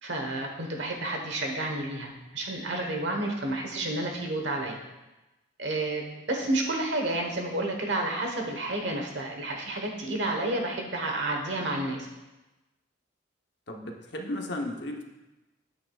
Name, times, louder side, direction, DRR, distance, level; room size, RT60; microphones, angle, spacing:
voice 1, 0.0-4.8 5.6-12.0, right 2 dB, 70° right, 2 dB, 1.2 m, -30 dB
voice 2, 13.7-15.0, left 1 dB, 60° left, 2 dB, 1.0 m, -34 dB
8.8 x 8.4 x 2.4 m, 1.0 s
head